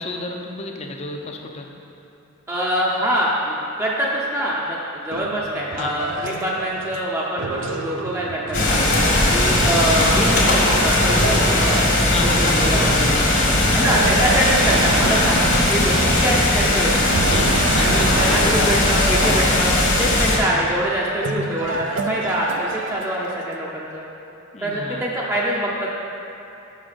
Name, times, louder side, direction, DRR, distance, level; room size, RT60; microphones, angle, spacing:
voice 1, 0.0-1.7 5.8-5.9 9.1-9.3 12.0-13.7 15.0-15.4 17.2-18.8 24.5-25.1, left 2 dB, 30° left, 2 dB, 0.5 m, -31 dB
voice 2, 2.5-8.8 9.3-11.8 12.2-13.2 13.7-17.1 17.7-24.0 24.6-26.0, equal, 10° right, -5 dB, 0.6 m, -24 dB
sound 1, 5.1-12.5 13.8-16.7 17.1-23.6, right 4 dB, 60° right, 0.4 m, -29 dB
sound 2, 8.5-20.4, left 1 dB, 60° left, 1.3 m, -18 dB
6.1 x 5.6 x 5.0 m, 3.0 s
head